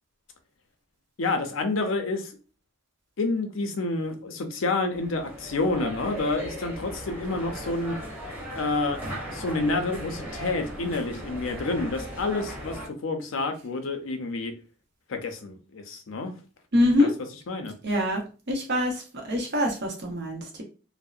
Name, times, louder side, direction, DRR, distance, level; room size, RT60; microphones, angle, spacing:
voice 1, 1.2-2.3 3.2-8.0 8.5-9.0 9.3-14.5 15.1-16.3 17.0-17.1 17.5-17.7, left 3 dB, 85° left, 5 dB, 0.5 m, -29 dB
sound 1, 4.9-12.9, right 1 dB, 10° right, 0.6 m, -38 dB
voice 2, 16.7-17.1 17.8-18.2 18.5-18.9 19.2-20.6, left 1 dB, 60° right, 1 dB, 0.8 m, -24 dB
2.6 x 2.0 x 2.3 m, 0.35 s
head